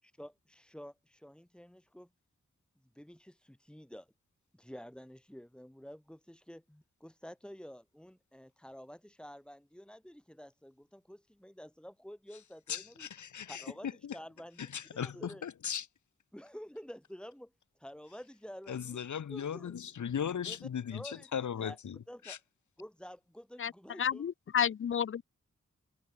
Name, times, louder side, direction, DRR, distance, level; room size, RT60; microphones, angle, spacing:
voice 1, 0.0-2.1 2.8-4.1 4.5-13.1 13.4-15.4 16.3-17.5 17.8-19.8 20.4-20.6 20.9-21.8 22.1-22.4 22.8-24.2, equal, 5° left, 6.4 m, -50 dB
voice 2, 12.7-13.6 14.0-14.2 14.6-15.9 18.7-22.0 22.2-22.4, left 8 dB, 85° left, 1.6 m, -37 dB
voice 3, 24.0-25.3, left 8 dB, 45° left, 0.5 m, -31 dB
wide cardioid pair, 140°, 29 cm